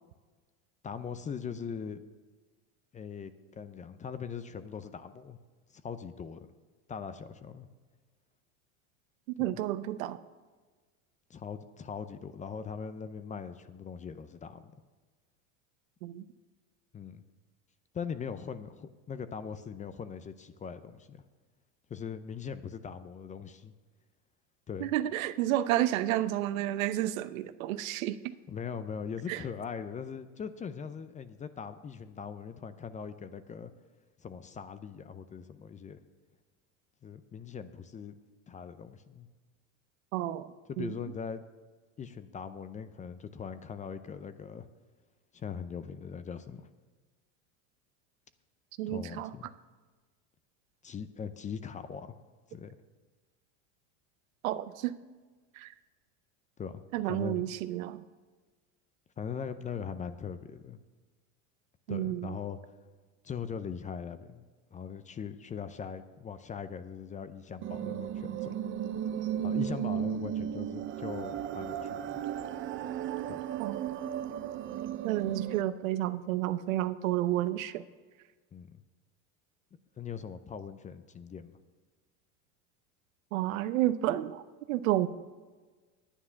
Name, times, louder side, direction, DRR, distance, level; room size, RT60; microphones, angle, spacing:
voice 1, 0.8-2.0 2.9-5.4 5.7-6.5 6.9-7.7 9.4-9.5 11.3-14.6 16.9-17.2 17.9-21.2 21.9-23.7 24.7-24.9 28.5-33.7 34.2-36.0 37.0-38.1 38.5-39.3 40.7-41.4 42.0-44.7 45.3-46.7 48.9-49.5 50.8-52.2 52.5-52.7 56.6-57.5 59.2-60.8 61.9-62.6 63.2-64.4 64.7-68.5 69.4-72.2 73.3-73.4 78.5-78.8 80.0-81.5, left 6 dB, 20° left, 12 dB, 0.5 m, -40 dB
voice 2, 9.4-10.2 16.0-16.2 24.8-28.2 29.3-29.4 40.1-40.5 40.8-40.9 48.8-49.3 54.4-54.9 55.6-55.7 56.9-58.0 61.9-62.4 73.6-73.8 75.0-77.8 83.3-84.4 84.7-85.1, right 14 dB, 80° right, 12 dB, 0.8 m, -30 dB
sound 1, 67.6-75.6, right 9 dB, 30° right, 0.6 m, -35 dB
10.0 x 9.5 x 5.7 m, 1.4 s
supercardioid pair, 115°, 40 cm